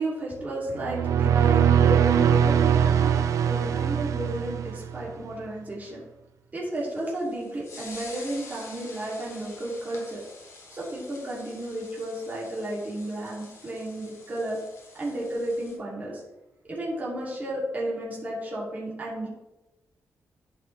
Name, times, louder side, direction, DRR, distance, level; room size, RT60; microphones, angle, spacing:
voice 1, 0.0-6.0 6.5-10.2 10.7-14.6 14.9-16.2 16.7-19.3, right 1 dB, 30° right, -6 dB, 2.6 m, -32 dB
sound 1, 0.7-5.1, right 9 dB, 75° right, 0.4 m, -22 dB
sound 2, 6.7-15.7, left 3 dB, 60° left, 3.3 m, -47 dB
11.0 x 5.8 x 3.2 m, 1.0 s
wide cardioid pair, 125°, 6 cm